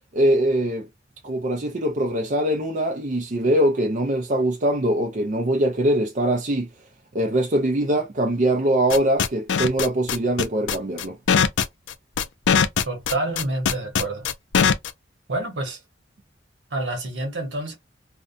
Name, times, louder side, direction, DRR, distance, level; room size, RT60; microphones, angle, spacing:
voice 1, 0.1-0.9 1.2-6.7 7.1-11.2, right 1 dB, 40° right, 0.5 m, -22 dB
sound 1, 8.9-14.9, left 7 dB, 80° left, 0.4 m, -20 dB
voice 2, 12.9-14.3 15.3-15.8 16.7-17.7, right 2 dB, 80° right, 1.0 m, -28 dB
2.5 x 2.1 x 2.5 m
head